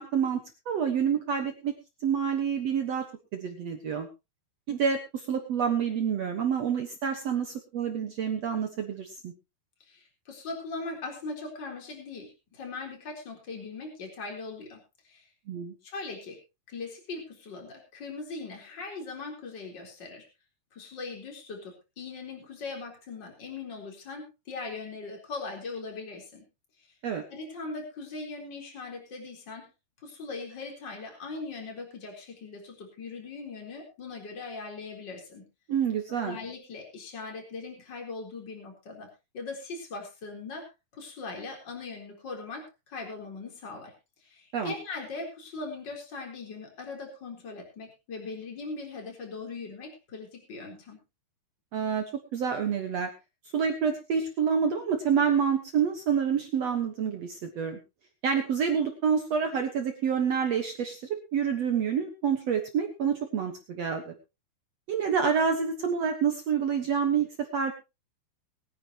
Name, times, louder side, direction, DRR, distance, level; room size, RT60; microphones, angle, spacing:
voice 1, 0.0-1.7 2.0-3.0 3.3-4.1 4.7-9.3 15.5-15.7 27.0-27.2 35.7-36.4 44.5-44.7 51.7-52.0 52.3-53.1 53.5-57.8 58.2-64.1 64.9-67.7, right 7 dB, 65° right, 5 dB, 1.6 m, -28 dB
voice 2, 9.9-14.8 15.0-15.3 15.8-16.4 16.7-20.3 20.7-26.5 27.3-29.7 30.0-35.5 36.1-39.1 39.3-40.7 40.9-43.9 44.2-51.0, left 3 dB, 25° left, 1 dB, 4.2 m, -40 dB
22.5 x 9.8 x 3.0 m, 0.27 s
omnidirectional pair, 4.8 m